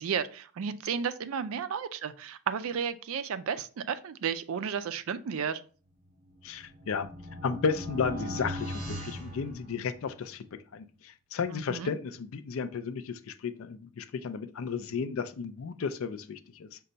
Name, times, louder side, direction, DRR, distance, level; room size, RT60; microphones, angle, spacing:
voice 1, 0.0-5.6 11.7-11.9, right 7 dB, 70° right, 11 dB, 0.4 m, -33 dB
sound 1, 6.3-10.2, equal, 35° right, 0.9 m, -39 dB
voice 2, 6.4-7.1 7.4-10.4 10.7-16.8, left 5 dB, 70° left, 11 dB, 0.4 m, -33 dB
5.3 x 2.2 x 3.8 m, 0.40 s
head